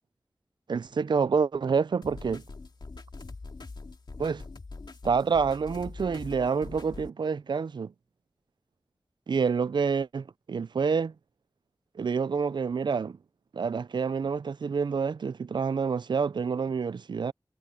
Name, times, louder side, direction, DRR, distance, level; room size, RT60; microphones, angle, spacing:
voice 1, 0.7-2.4 4.2-4.4 5.0-7.9 9.3-11.1 12.0-13.2 13.5-17.3, right 5 dB, 85° right, 0.4 m, -28 dB
sound 1, 2.0-7.1, left 3 dB, 75° left, 2.3 m, -43 dB
wide cardioid pair, 65°, 8 cm